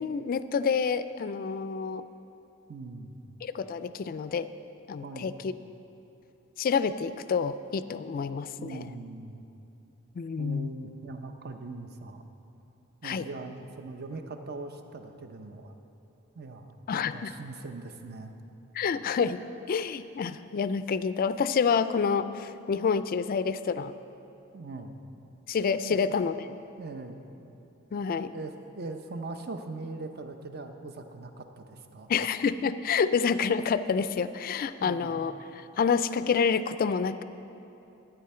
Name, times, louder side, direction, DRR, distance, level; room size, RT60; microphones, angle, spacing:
voice 1, 0.0-2.0 3.4-4.5 4.9-5.5 6.6-8.9 10.2-10.7 13.0-13.3 16.9-17.3 18.8-19.4 19.7-23.9 25.5-26.4 27.9-28.3 32.1-37.2, left 6 dB, 45° left, 13 dB, 0.3 m, -28 dB
voice 2, 2.7-3.2 5.0-5.4 8.6-9.5 10.4-12.2 13.0-15.7 16.3-18.3 24.5-25.0 25.8-26.0 26.8-27.2 28.1-32.1 34.8-35.2, right 3 dB, 50° right, 6 dB, 0.7 m, -41 dB
14.0 x 9.1 x 4.3 m, 2.9 s
head